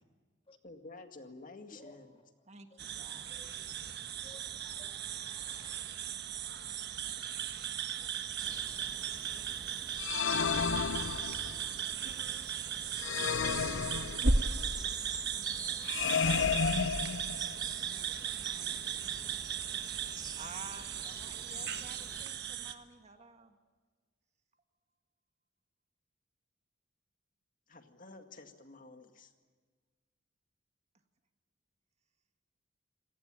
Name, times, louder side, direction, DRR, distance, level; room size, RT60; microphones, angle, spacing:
voice 1, 0.6-2.1 27.7-29.3, left 3 dB, 45° left, 2.0 m, -51 dB
voice 2, 1.7-2.0 2.9-3.0 3.3-3.8 4.2-5.8, left 2 dB, 30° left, 2.4 m, -57 dB
voice 3, 2.4-3.4 15.3-23.6, right 3 dB, 35° right, 1.7 m, -54 dB
sound 1, 2.8-22.7, right 6 dB, 60° right, 1.5 m, -37 dB
sound 2, 8.4-22.3, right 4 dB, 20° right, 1.6 m, -48 dB
sound 3, 10.0-11.7 13.0-14.6 15.8-17.7, left 6 dB, 90° left, 0.8 m, -32 dB
28.5 x 18.0 x 9.0 m
head